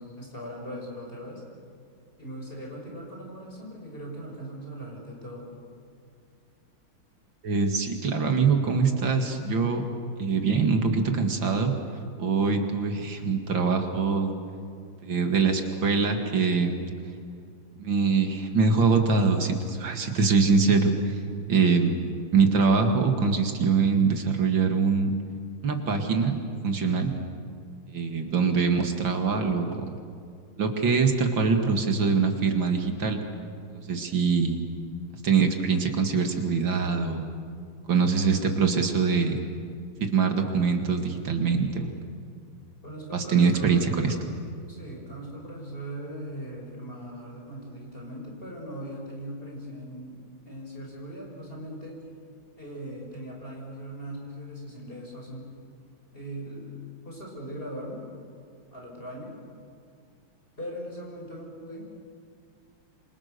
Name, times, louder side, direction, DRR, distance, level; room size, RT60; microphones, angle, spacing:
voice 1, 0.0-1.4 2.2-5.5 42.8-43.9 44.7-50.2 50.4-52.0 52.6-55.5 56.1-58.0 58.7-59.4 60.6-61.9, equal, 25° left, -1 dB, 6.2 m, -39 dB
voice 2, 7.4-9.8 10.2-11.7 12.2-14.3 15.0-16.7 17.8-21.2 21.5-21.9 22.3-25.1 25.6-27.1 27.9-29.9 30.6-33.2 33.7-34.6 35.2-37.3 37.9-39.4 40.0-41.9 43.1-44.1, right 5 dB, 60° right, 4 dB, 2.7 m, -23 dB
27.5 x 26.5 x 6.8 m, 2.4 s
omnidirectional pair, 2.4 m